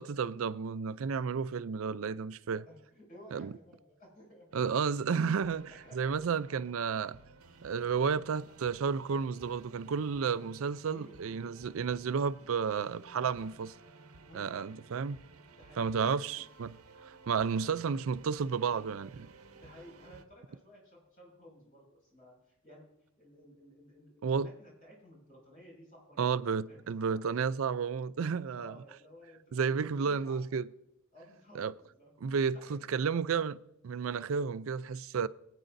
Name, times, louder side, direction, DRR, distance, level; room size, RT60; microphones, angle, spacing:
voice 1, 0.0-2.6 3.3-3.5 4.5-7.2 7.6-13.7 14.3-15.2 15.8-16.7 17.0-19.3 24.2-24.5 26.2-28.8 29.5-30.7 31.5-31.7 32.2-33.6 33.8-35.3, right 6 dB, 65° right, 0.4 m, -32 dB
voice 2, 2.4-4.5 5.7-6.2 10.9-11.2 14.3-14.5 15.5-16.4 19.5-22.8 23.2-27.2 28.5-30.4 31.1-32.1 32.4-33.3, equal, 40° left, 5.6 m, -55 dB
sound 1, 4.5-20.2, right 3 dB, 85° right, 0.8 m, -56 dB
23.0 x 9.1 x 2.6 m
head